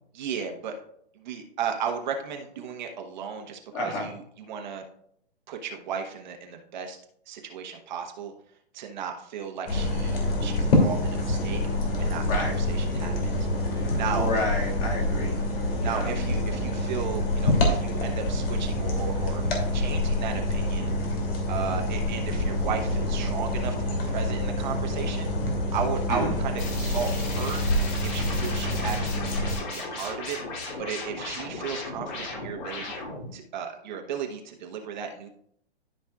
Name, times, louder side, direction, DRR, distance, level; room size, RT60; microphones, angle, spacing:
voice 1, 0.1-0.7 1.2-4.8 5.5-7.0 7.3-8.3 8.7-11.6 12.0-13.5 13.9-14.3 15.8-19.4 19.7-20.9 21.5-25.3 25.7-27.6 28.0-30.4 30.8-32.9 33.3-35.3, right 7 dB, 45° right, 3 dB, 1.1 m, -35 dB
voice 2, 3.7-4.1 12.3-12.6 13.7-15.4 15.8-16.1 26.1-26.3, left 1 dB, 25° left, -1 dB, 1.9 m, -31 dB
sound 1, 9.7-29.6, left 1 dB, 60° left, 2.7 m, -26 dB
sound 2, 26.6-33.3, left 3 dB, 45° left, 2.9 m, -36 dB
12.5 x 5.5 x 2.4 m, 0.67 s
hypercardioid pair, 145°, 32 cm